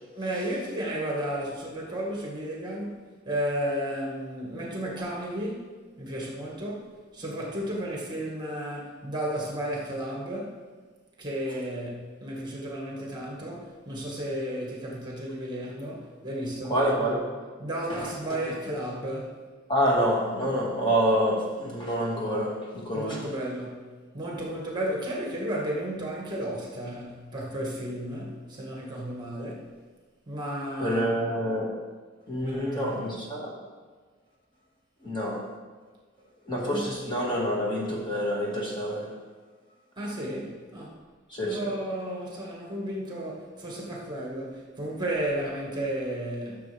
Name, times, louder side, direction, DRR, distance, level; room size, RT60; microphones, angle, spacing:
voice 1, 0.2-10.6 11.2-16.8 17.6-19.4 22.9-23.9 24.1-29.7 30.3-31.3 32.4-33.2 36.7-36.9 40.0-41.0 41.4-46.6, right 1 dB, 20° right, -3 dB, 1.7 m, -33 dB
voice 2, 16.7-17.3 17.9-18.0 19.7-23.3 30.8-31.7 32.3-33.5 35.0-35.5 36.5-39.1 41.3-41.7, equal, 25° left, -3 dB, 1.9 m, -27 dB
14.0 x 6.8 x 3.4 m, 1.4 s
head